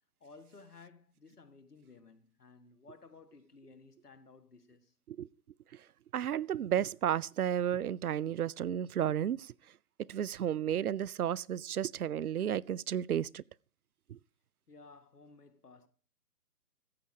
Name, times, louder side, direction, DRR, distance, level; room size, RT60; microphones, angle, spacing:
voice 1, 0.2-5.0 14.7-15.9, left 4 dB, 75° left, 1.8 m, -56 dB
voice 2, 6.1-9.5 10.1-13.4 14.1-14.2, right 10 dB, 70° right, 0.5 m, -32 dB
14.5 x 8.7 x 4.9 m
figure-of-eight pair, 140°, 46 cm